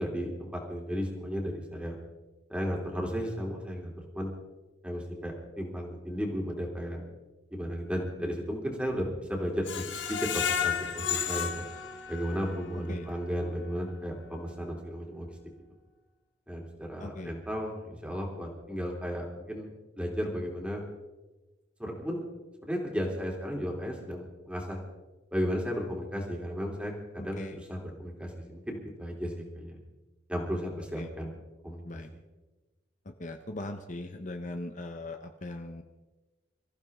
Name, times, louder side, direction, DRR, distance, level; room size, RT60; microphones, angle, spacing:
voice 1, 0.0-2.0 2.5-4.3 4.8-7.0 7.5-11.6 12.1-15.3 16.5-19.7 20.0-20.8 21.8-22.2 22.6-24.8 25.3-27.4 27.7-29.8 30.3-31.3 31.6-31.8, equal, 5° right, 0 dB, 3.0 m, -34 dB
Screech, 9.7-12.6 13.1-13.2 13.6-13.7, left 8 dB, 75° left, 1.4 m, -32 dB
voice 2, 12.7-13.1 17.0-17.3 27.2-27.6 31.0-31.1 31.8-32.1 33.0-35.8, left 2 dB, 40° left, 6 dB, 0.9 m, -39 dB
25.5 x 14.5 x 3.6 m, 1.1 s
head